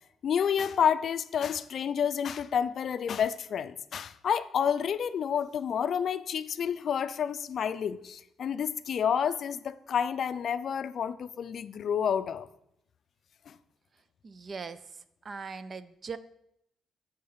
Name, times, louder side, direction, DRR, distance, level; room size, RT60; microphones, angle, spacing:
voice 1, 0.2-12.5 13.5-13.6, left 8 dB, 60° left, 13 dB, 0.4 m, -29 dB
voice 2, 14.2-14.8 15.2-16.2, right 5 dB, 40° right, 15 dB, 0.5 m, -39 dB
8.5 x 4.0 x 5.7 m, 0.77 s
cardioid pair, 90°, 0 cm